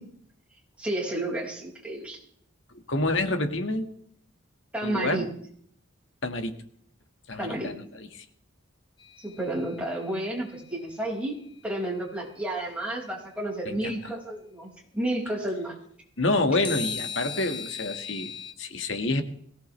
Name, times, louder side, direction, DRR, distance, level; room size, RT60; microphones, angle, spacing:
voice 1, 0.8-2.2 4.7-5.2 7.4-7.7 9.2-11.4 11.6-15.7, right 1 dB, 5° right, -4 dB, 5.6 m, -31 dB
voice 2, 2.9-3.9 4.8-5.3 6.2-6.6 7.3-8.2 13.7-13.9 16.2-19.2, left 2 dB, 60° left, 6 dB, 1.8 m, -28 dB
sound 1, 9.0-10.2 16.6-18.5, left 6 dB, 25° left, 1.1 m, -37 dB
22.0 x 18.0 x 3.3 m, 0.62 s
head